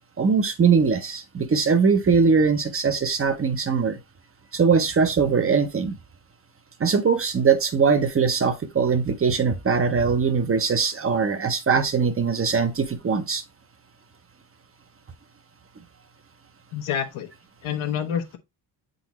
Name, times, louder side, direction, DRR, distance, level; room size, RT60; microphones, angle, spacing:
voice 1, 0.2-4.0 4.5-6.0 6.8-13.4, right 5 dB, 30° right, 0.7 m, -21 dB
voice 2, 16.7-17.3 17.6-18.4, left 8 dB, 85° left, 1.2 m, -28 dB
8.2 x 3.9 x 3.0 m
cardioid pair, 115°, 48 cm